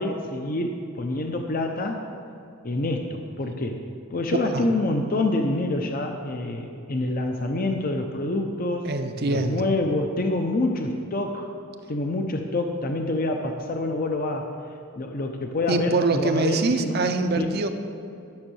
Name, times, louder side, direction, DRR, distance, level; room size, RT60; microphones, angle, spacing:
voice 1, 0.0-2.0 2.6-3.8 4.1-8.9 9.3-11.5 11.9-14.5 15.0-17.0 17.4-17.5, left 2 dB, 45° left, 4 dB, 0.7 m, -27 dB
voice 2, 8.8-9.6 15.7-17.7, right 3 dB, 50° right, 7 dB, 0.7 m, -24 dB
11.5 x 6.3 x 6.3 m, 2.7 s
head